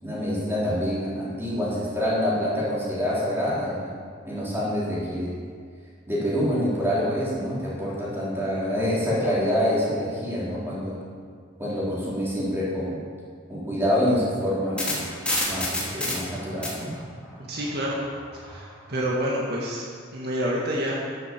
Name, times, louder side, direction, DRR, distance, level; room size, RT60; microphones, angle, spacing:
voice 1, 0.0-3.9 4.2-5.3 6.1-11.0 11.6-13.0 13.5-15.0 15.5-16.9, equal, 10° right, -8 dB, 4.1 m, -26 dB
sound 1, 14.4-18.6, left 1 dB, 5° left, 3.2 m, -31 dB
voice 2, 17.5-18.0 18.3-19.8 20.1-21.0, equal, 55° right, -4 dB, 1.8 m, -28 dB
12.5 x 7.7 x 7.7 m, 2.1 s
head